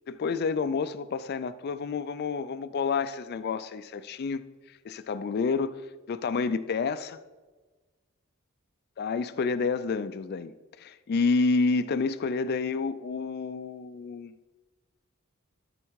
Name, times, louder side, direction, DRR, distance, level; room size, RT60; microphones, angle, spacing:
voice 1, 0.1-4.4 4.8-5.7 6.1-7.2 9.0-14.3, left 4 dB, 50° left, 0.4 m, -29 dB
13.0 x 4.4 x 4.7 m
head